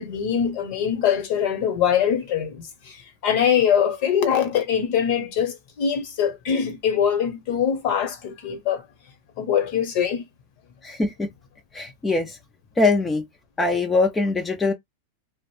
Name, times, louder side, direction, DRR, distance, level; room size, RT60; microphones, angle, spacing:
voice 1, 0.0-3.0 3.2-8.8 9.4-10.2, left 8 dB, 50° left, 0.8 m, -23 dB
voice 2, 10.8-11.3 11.7-12.4 12.8-13.2 13.6-14.7, left 3 dB, 10° left, 0.4 m, -22 dB
2.5 x 2.0 x 3.0 m
supercardioid pair, 155°, 0 cm